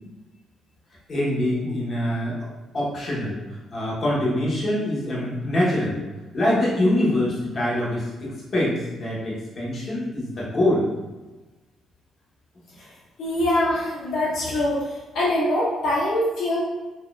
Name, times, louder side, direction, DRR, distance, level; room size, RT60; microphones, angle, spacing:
voice 1, 1.1-2.4 2.7-3.4 3.7-6.0 6.3-10.8, left 1 dB, 40° left, -6 dB, 1.2 m, -24 dB
voice 2, 13.2-14.9 15.1-16.6, left 1 dB, 80° left, -7 dB, 1.0 m, -23 dB
4.0 x 2.8 x 2.4 m, 1.2 s
cardioid pair, 90°, 0 cm